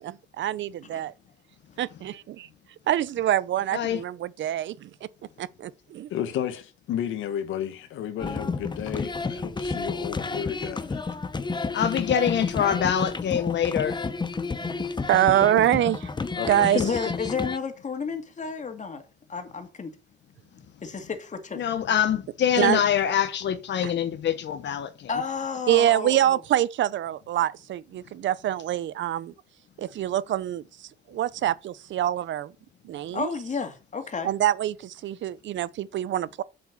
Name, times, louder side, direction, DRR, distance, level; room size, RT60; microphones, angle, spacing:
voice 1, 0.0-1.1 1.8-2.1 2.9-4.9 5.4-6.1 14.7-14.8 15.1-16.1 16.5-16.8 22.6-22.8 23.8-23.9 25.7-29.3 29.8-32.5 32.8-33.3 34.2-36.4, right 12 dB, 70° right, 0.7 m, -25 dB
voice 2, 3.7-4.0 11.7-14.0 21.5-25.2, left 9 dB, 65° left, 1.0 m, -25 dB
voice 3, 6.1-11.1 16.4-17.2, left 10 dB, 85° left, 1.6 m, -33 dB
sound 1, 8.2-17.6, left 4 dB, 20° left, 0.9 m, -31 dB
voice 4, 16.7-19.0 19.3-19.9 20.8-21.6 25.1-26.4 33.1-34.3, left 5 dB, 35° left, 2.4 m, -31 dB
7.6 x 7.0 x 6.1 m
cardioid pair, 90°, 20 cm